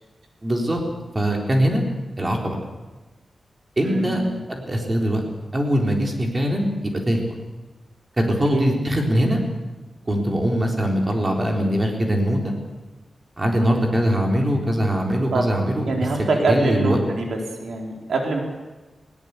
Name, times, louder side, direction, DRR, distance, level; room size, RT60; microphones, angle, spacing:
voice 1, 0.4-0.8 1.1-1.8 2.2-2.6 3.8-4.2 4.5-5.2 5.5-7.2 8.2-9.4 10.1-12.5 13.4-15.9 16.5-17.0, equal, 25° right, 1 dB, 3.9 m, -21 dB
voice 2, 3.8-4.4 8.5-8.8 15.3-15.4 15.8-17.3 17.6-18.4, right 3 dB, 80° right, 1 dB, 4.2 m, -24 dB
20.0 x 17.5 x 8.3 m, 1.2 s
wide cardioid pair, 130°, 0 cm